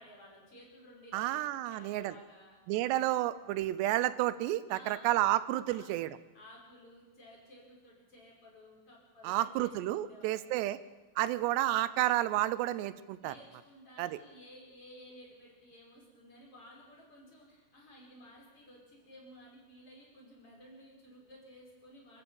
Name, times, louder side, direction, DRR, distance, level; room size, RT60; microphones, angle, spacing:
voice 1, 0.0-1.4 1.7-2.6 4.7-5.1 5.7-5.9 6.3-10.8 13.2-22.2, left 1 dB, 30° left, -3 dB, 6.1 m, -55 dB
voice 2, 1.1-2.1 2.7-6.2 9.2-10.8 11.2-13.3 14.0-14.2, right 15 dB, 90° right, 16 dB, 3.0 m, -31 dB
27.0 x 14.5 x 7.1 m, 1.2 s
omnidirectional pair, 4.8 m